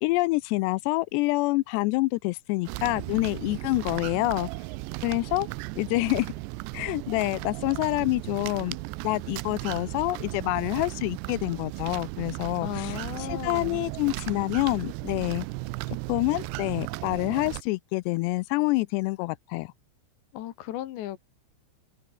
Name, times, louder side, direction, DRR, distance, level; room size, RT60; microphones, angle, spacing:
voice 1, 0.0-4.5 5.0-5.5 5.8-6.3 6.7-8.8 9.0-15.5 15.9-19.7, left 22 dB, 90° left, 2.4 m, -27 dB
sound 1, 2.7-17.6, right 22 dB, 85° right, 2.5 m, -36 dB
voice 2, 12.6-13.8 20.3-21.2, left 13 dB, 70° left, 3.4 m, -35 dB
open air
omnidirectional pair, 5.5 m